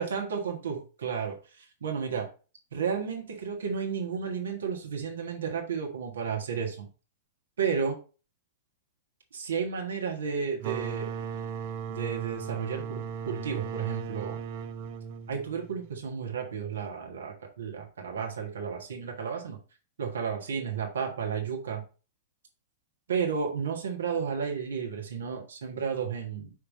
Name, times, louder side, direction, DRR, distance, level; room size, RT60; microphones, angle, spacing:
voice 1, 0.0-2.3 2.7-6.9 7.6-8.0 9.3-11.1 11.9-14.4 15.3-19.6 20.0-21.8 23.1-26.5, right 6 dB, 65° right, 1 dB, 1.5 m, -32 dB
sound 1, 10.6-16.1, right 7 dB, 45° right, 0.5 m, -37 dB
5.7 x 3.2 x 5.1 m, 0.34 s
figure-of-eight pair, 100°, 0 cm